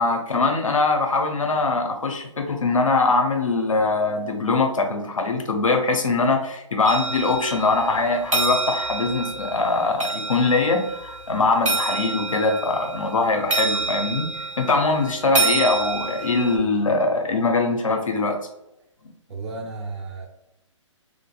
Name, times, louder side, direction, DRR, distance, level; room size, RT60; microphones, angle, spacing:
voice 1, 0.0-14.3 14.6-18.4, left 3 dB, 90° left, 3 dB, 0.5 m, -22 dB
sound 1, 6.9-16.6, right 3 dB, 85° right, 0.9 m, -28 dB
voice 2, 19.3-20.3, right 3 dB, 60° right, -1 dB, 0.8 m, -33 dB
3.1 x 2.5 x 2.3 m, 0.87 s
figure-of-eight pair, 135°, 16 cm